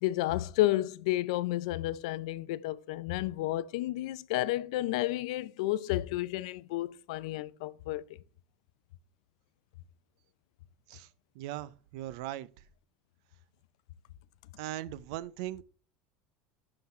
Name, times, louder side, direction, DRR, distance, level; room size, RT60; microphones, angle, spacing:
voice 1, 0.0-8.0, left 16 dB, 80° left, 0.5 m, -31 dB
voice 2, 11.3-12.5 14.6-15.6, right 14 dB, 70° right, 0.6 m, -39 dB
11.5 x 3.9 x 4.2 m
cardioid pair, 155°, 3 cm